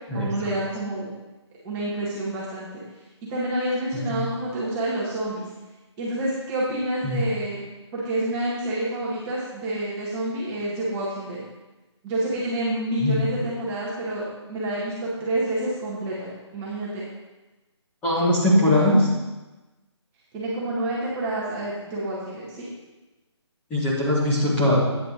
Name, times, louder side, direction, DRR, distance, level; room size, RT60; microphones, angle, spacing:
voice 1, 0.1-1.1 1.6-2.7 3.3-5.5 6.0-7.6 7.9-11.4 12.0-17.0 18.5-19.0 20.3-22.7, right 1 dB, 10° right, -7 dB, 1.6 m, -28 dB
voice 2, 18.0-19.0 23.7-24.8, left 1 dB, 10° left, -7 dB, 1.8 m, -20 dB
9.3 x 5.8 x 5.1 m, 1.1 s
hypercardioid pair, 165°, 15 cm